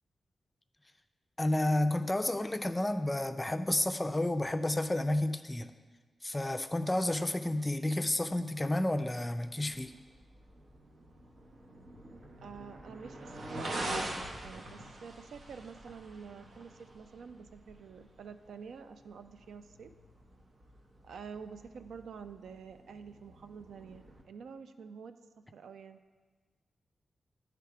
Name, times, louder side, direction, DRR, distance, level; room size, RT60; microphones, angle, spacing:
voice 1, 1.4-5.7 6.2-9.9, left 1 dB, 20° left, 8 dB, 0.4 m, -31 dB
sound 1, 9.6-24.2, right 1 dB, 70° right, 0.9 m, -45 dB
voice 2, 12.4-19.9 21.0-25.1 25.5-26.0, right 6 dB, 90° right, 9 dB, 0.3 m, -48 dB
10.0 x 3.4 x 4.7 m, 1.5 s
cardioid pair, 60°, 0 cm